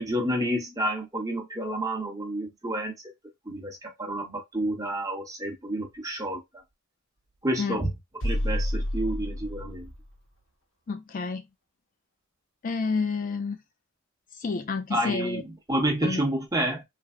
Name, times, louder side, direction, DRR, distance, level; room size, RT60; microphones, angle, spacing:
voice 1, 0.0-2.9 3.5-6.6 7.4-7.9 8.2-9.9 14.9-16.8, right 1 dB, 15° right, 0.9 m, -29 dB
sound 1, 8.2-10.0, equal, 60° left, 1.0 m, -29 dB
voice 2, 10.9-11.4 12.6-13.6 14.4-15.4 16.0-16.2, left 4 dB, 40° left, 0.3 m, -29 dB
3.3 x 2.0 x 3.5 m
head